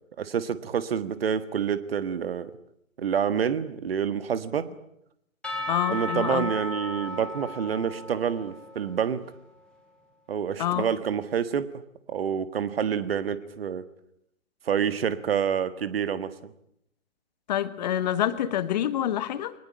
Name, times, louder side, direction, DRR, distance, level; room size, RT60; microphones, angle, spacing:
voice 1, 0.2-2.5 3.0-4.7 5.9-9.2 10.3-11.7 12.1-13.8 14.7-16.3, right 8 dB, 45° right, 15 dB, 1.6 m, -27 dB
Percussion / Church bell, 5.4-9.3, left 1 dB, ahead, 4.0 m, -35 dB
voice 2, 5.7-6.5 10.6-10.8 17.5-19.5, left 11 dB, 30° left, 14 dB, 1.5 m, -27 dB
23.0 x 20.0 x 10.0 m, 0.74 s
figure-of-eight pair, 135°, 40 cm